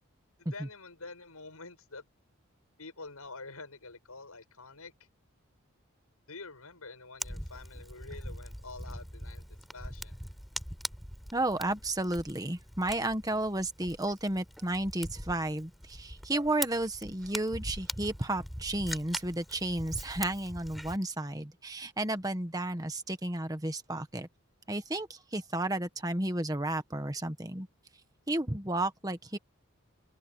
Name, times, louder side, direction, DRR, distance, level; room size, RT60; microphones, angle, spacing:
voice 1, 0.4-2.1 2.8-4.9 6.3-9.4 9.7-10.2, left 3 dB, 85° left, 8.0 m, -47 dB
Fire, 7.2-21.0, equal, ahead, 4.8 m, -42 dB
voice 2, 11.3-24.3 24.7-27.7 28.3-29.4, right 1 dB, 15° right, 1.5 m, -32 dB
open air
head